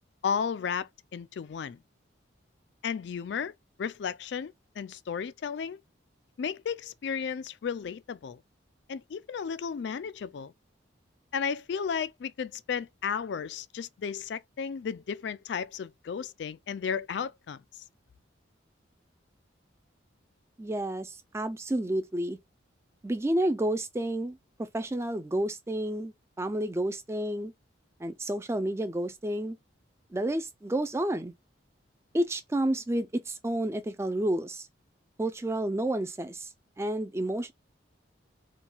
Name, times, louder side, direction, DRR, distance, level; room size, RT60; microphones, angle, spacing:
voice 1, 0.2-1.8 2.8-3.5 3.8-5.8 6.4-8.4 8.9-10.5 11.3-17.6, left 6 dB, 60° left, 0.3 m, -34 dB
voice 2, 20.6-22.4 23.0-27.5 28.0-29.6 30.1-31.3 32.1-34.7 35.2-36.5 36.8-37.5, right 1 dB, 15° right, 0.3 m, -30 dB
4.4 x 2.3 x 3.9 m
head